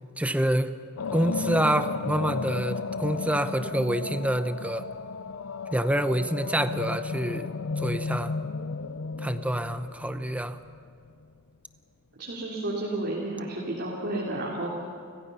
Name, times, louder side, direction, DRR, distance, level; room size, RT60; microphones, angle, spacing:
voice 1, 0.2-0.8 1.1-4.8 5.7-7.5 7.8-8.3 9.2-10.6, right 1 dB, 5° right, 10 dB, 0.7 m, -27 dB
sound 1, 1.0-11.1, left 4 dB, 65° left, 0.6 m, -34 dB
voice 2, 12.2-14.9, right 2 dB, 55° right, -5 dB, 3.4 m, -31 dB
30.0 x 15.5 x 5.6 m, 2.3 s
head